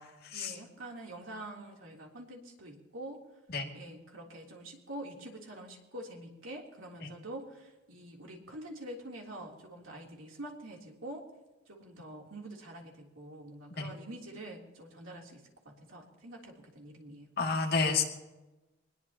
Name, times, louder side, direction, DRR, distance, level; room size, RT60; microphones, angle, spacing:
voice 1, 0.3-3.2 3.7-11.2 11.7-17.3, right 1 dB, 85° right, -1 dB, 3.3 m, -46 dB
voice 2, 17.4-18.0, left 4 dB, 50° left, 0 dB, 2.4 m, -29 dB
24.0 x 20.5 x 2.9 m, 1.1 s
head